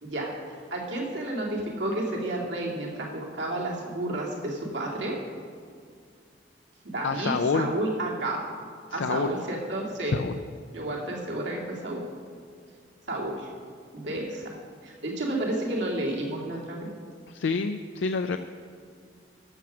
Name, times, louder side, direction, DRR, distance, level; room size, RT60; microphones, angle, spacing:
voice 1, 0.0-5.2 6.9-8.4 8.9-10.2 10.7-12.0 13.1-13.5 13.9-14.4 14.8-16.9, right 1 dB, 85° right, -2 dB, 2.3 m, -31 dB
voice 2, 7.0-7.7 8.9-9.3 10.1-10.4 17.3-18.4, left 4 dB, 85° left, 8 dB, 0.4 m, -27 dB
13.5 x 6.0 x 6.2 m, 2.2 s
head